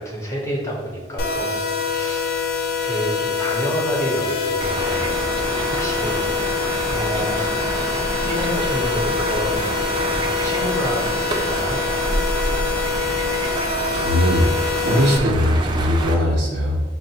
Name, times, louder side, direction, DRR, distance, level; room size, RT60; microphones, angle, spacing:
voice 1, 0.0-2.3 2.8-7.5 8.2-11.8, equal, 15° left, -2 dB, 0.7 m, -29 dB
sound 1, 1.2-15.2, left 5 dB, 55° left, 0.3 m, -25 dB
sound 2, 4.6-16.1, right 2 dB, 25° right, 0.3 m, -27 dB
voice 2, 13.9-14.5 14.8-16.8, equal, 75° right, -4 dB, 0.6 m, -19 dB
5.9 x 2.0 x 2.8 m, 1.3 s
head